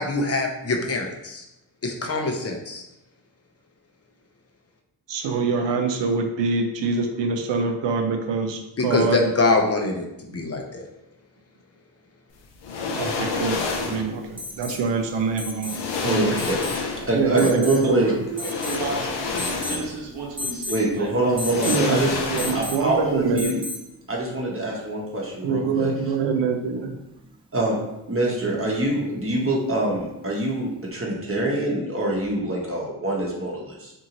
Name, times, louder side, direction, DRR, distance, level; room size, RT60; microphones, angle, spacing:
voice 1, 0.0-1.4 1.8-2.8 8.8-10.1 10.3-10.8, left 3 dB, 35° left, 3 dB, 0.6 m, -24 dB
voice 2, 5.1-9.2 10.3-10.4 13.0-16.5 17.1-18.1 21.7-22.0 22.3-23.6 25.4-26.9, right 4 dB, 80° right, 4 dB, 0.6 m, -25 dB
sound 1, 12.6-14.1 15.2-15.3 15.6-17.2 18.3-20.1 20.4-20.5 21.3-22.9 23.2-23.4, left 4 dB, 85° left, 0.6 m, -28 dB
Alarm, 14.4-14.8 15.4-15.8 16.4-16.8 17.4-17.8 18.4-18.9 19.4-19.9 20.4-20.8 21.4-21.8 22.4-22.9 23.4-23.9 25.6-25.7, left 2 dB, 10° right, 0.5 m, -33 dB
voice 3, 16.0-16.6 17.1-18.1 20.7-22.2 22.5-23.6 24.1-25.9 27.5-27.8 28.1-33.9, right 1 dB, 30° right, -3 dB, 0.9 m, -25 dB
voice 4, 17.8-22.8, right 3 dB, 60° right, -1 dB, 0.9 m, -34 dB
2.7 x 2.6 x 2.9 m, 0.90 s
supercardioid pair, 40°, 42 cm